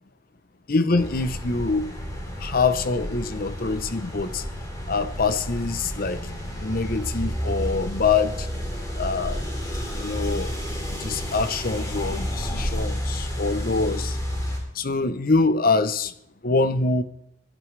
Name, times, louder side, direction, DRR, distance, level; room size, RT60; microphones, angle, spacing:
voice 1, 0.7-1.9 2.4-4.4 4.9-6.2 6.6-8.5 9.0-9.4 9.9-10.5 10.9-14.2 14.7-16.1 16.4-17.0, left 3 dB, 45° left, 0.7 m, -24 dB
sound 1, 1.0-14.6, equal, 20° left, 3.2 m, -31 dB
20.5 x 11.0 x 3.3 m
head